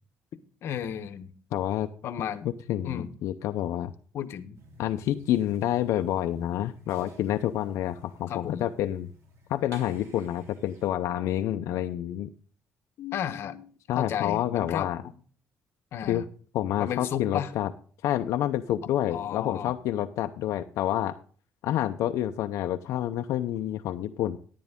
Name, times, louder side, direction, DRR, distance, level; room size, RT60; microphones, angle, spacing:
voice 1, 0.6-1.3 2.0-2.5 2.8-3.1 4.1-4.6 8.3-8.7 13.0-15.1 15.9-16.2 16.8-17.5 19.1-19.8, left 9 dB, 55° left, 9 dB, 1.0 m, -33 dB
voice 2, 1.5-1.9 2.4-3.9 4.8-9.1 9.5-12.3 13.9-15.0 16.1-16.2 16.5-17.7 18.0-21.1 21.6-24.4, left 12 dB, 75° left, 6 dB, 0.6 m, -28 dB
sound 1, 4.5-10.9, right 1 dB, 60° right, 3.4 m, -54 dB
10.5 x 10.5 x 3.6 m, 0.43 s
cardioid pair, 175°, 5 cm